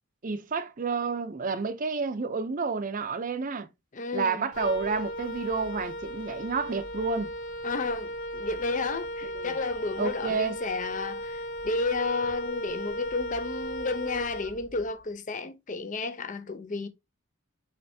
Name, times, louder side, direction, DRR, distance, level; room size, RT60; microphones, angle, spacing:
voice 1, 0.2-3.7 4.1-7.3 9.3-9.6 10.0-10.6, right 4 dB, 45° right, 0.6 m, -30 dB
voice 2, 3.9-4.5 7.6-16.9, left 3 dB, 40° left, 0.6 m, -32 dB
Wind instrument woodwind instrument, 4.5-15.0, equal, 70° left, 1.0 m, -36 dB
5.7 x 3.2 x 2.7 m
head